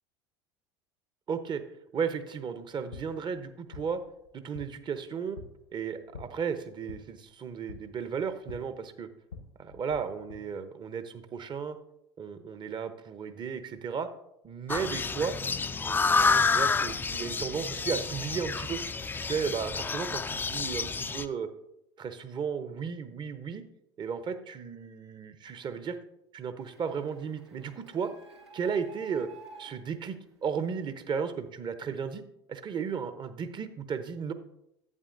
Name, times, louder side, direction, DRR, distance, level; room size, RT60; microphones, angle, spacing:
voice 1, 1.3-1.6 1.9-4.0 4.3-5.4 5.7-9.1 9.6-11.8 12.2-14.1 14.4-15.3 15.8-18.8 19.1-21.5 22.0-23.6 24.0-26.0 26.3-28.1 28.5-29.3 29.6-30.2 30.4-32.2 32.5-34.3, right 6 dB, 35° right, 10 dB, 0.8 m, -34 dB
sound 1, 2.7-10.4, left 5 dB, 85° left, 1.1 m, -49 dB
sound 2, 14.7-21.3, left 4 dB, 15° left, 0.3 m, -29 dB
Printer, 26.6-31.2, right 3 dB, 80° right, 1.0 m, -52 dB
11.0 x 8.4 x 2.6 m, 0.83 s
figure-of-eight pair, 70°, 14 cm